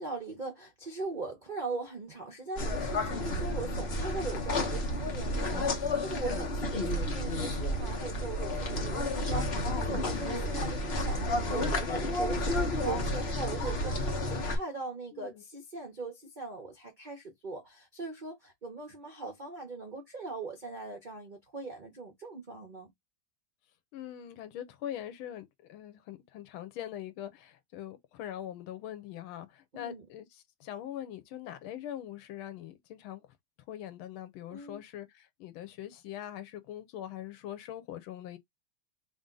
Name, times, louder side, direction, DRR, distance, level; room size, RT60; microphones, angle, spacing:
voice 1, 0.0-22.9 29.7-30.0 34.5-34.8, right 3 dB, 90° right, 0.4 m, -40 dB
sound 1, 2.6-14.6, left 1 dB, 40° left, 1.0 m, -31 dB
voice 2, 15.1-15.4 23.9-33.2 33.7-38.4, left 11 dB, 85° left, 1.5 m, -42 dB
3.5 x 2.6 x 3.7 m
omnidirectional pair, 2.2 m